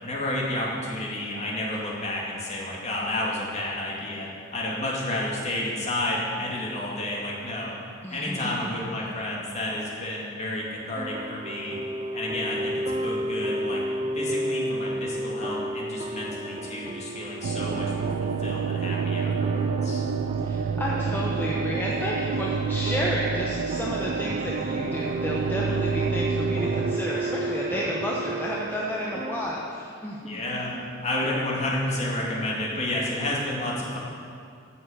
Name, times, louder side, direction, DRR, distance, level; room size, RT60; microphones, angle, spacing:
voice 1, 0.0-7.7 8.1-11.8 12.1-13.8 14.1-20.1 30.2-34.0, left 1 dB, 35° left, -4 dB, 2.4 m, -31 dB
voice 2, 8.0-9.0 20.4-30.8, equal, 10° left, -4 dB, 0.9 m, -31 dB
sound 1, 10.9-29.6, right 1 dB, 25° right, 0.5 m, -33 dB
sound 2, 17.4-27.0, right 5 dB, 85° right, 0.4 m, -28 dB
10.5 x 7.2 x 8.0 m, 2.3 s
head